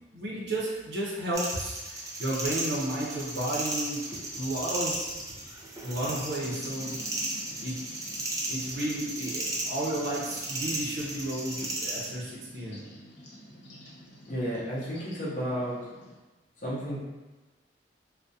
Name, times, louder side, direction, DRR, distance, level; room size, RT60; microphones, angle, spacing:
voice 1, 0.1-4.0 4.3-5.4 5.8-7.0 7.6-7.8 8.5-12.8, right 1 dB, 65° right, -5 dB, 0.5 m, -33 dB
sound 1, 1.3-12.1, right 2 dB, 20° right, 0.4 m, -35 dB
sound 2, 6.4-16.2, equal, 90° left, 0.7 m, -49 dB
voice 2, 14.3-15.8 16.6-17.0, equal, 45° left, -6 dB, 0.7 m, -32 dB
2.3 x 2.1 x 2.6 m, 1.2 s
head